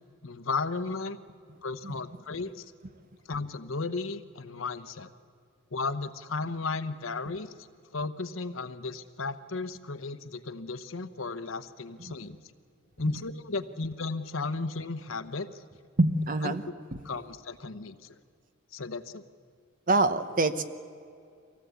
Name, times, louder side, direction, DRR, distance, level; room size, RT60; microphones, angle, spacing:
voice 1, 0.2-1.2 1.6-2.6 3.3-5.1 5.7-7.5 7.9-12.4 13.0-15.6 16.4-16.8 17.0-18.2 18.7-19.2, left 3 dB, 80° left, 12 dB, 1.0 m, -34 dB
voice 2, 16.0-16.6 16.9-17.0 19.9-20.6, right 2 dB, 45° right, 11 dB, 1.0 m, -25 dB
24.5 x 17.5 x 8.3 m, 2.3 s
head